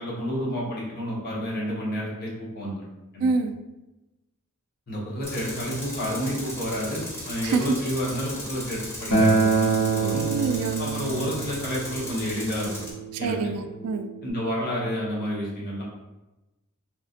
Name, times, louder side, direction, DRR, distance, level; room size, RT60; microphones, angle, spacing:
voice 1, 0.0-2.8 3.1-3.3 4.9-10.2 10.8-12.7 13.2-13.3 14.2-15.8, equal, 45° left, -5 dB, 0.9 m, -30 dB
voice 2, 3.2-3.6 7.4-7.7 10.3-10.8 13.1-14.1, right 4 dB, 80° right, 12 dB, 0.3 m, -26 dB
Tools, 5.2-12.9, left 1 dB, 10° left, 0.7 m, -37 dB
Acoustic guitar, 9.1-14.3, right 4 dB, 80° left, 0.9 m, -26 dB
3.1 x 2.5 x 2.4 m, 1.0 s
head